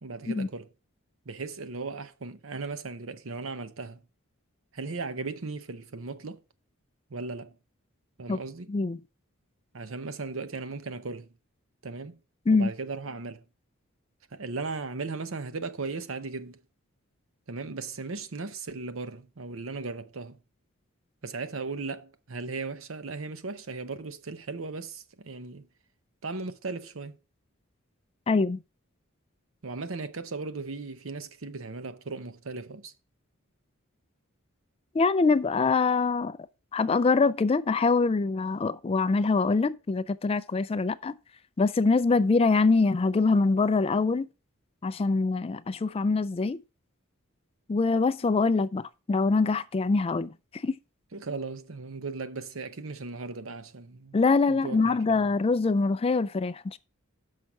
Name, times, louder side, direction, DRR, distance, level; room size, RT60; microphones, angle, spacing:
voice 1, 0.0-0.7 1.3-4.0 4.7-6.4 7.1-7.6 8.2-8.7 9.7-11.3 11.8-12.2 12.5-13.4 14.3-16.6 17.5-20.4 21.2-25.7 26.2-27.2 29.6-32.9 51.1-54.2 54.5-54.8, right 3 dB, 65° right, 0.8 m, -37 dB
voice 2, 8.7-9.0 12.5-12.7 28.3-28.6 34.9-36.4 36.7-41.1 41.6-44.3 44.8-46.6 47.7-50.3 50.6-50.8 54.1-56.8, left 4 dB, 25° left, 0.3 m, -24 dB
6.4 x 5.7 x 5.9 m
head